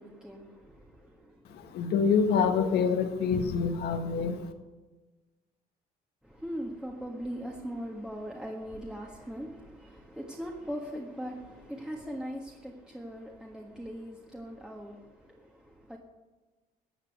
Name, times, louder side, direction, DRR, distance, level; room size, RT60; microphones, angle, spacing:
voice 1, 0.0-1.7 6.2-16.0, equal, 5° right, 1.6 m, -40 dB
voice 2, 1.7-4.4, left 6 dB, 75° left, 1.7 m, -26 dB
15.0 x 8.7 x 6.6 m
cardioid pair, 110°, 17 cm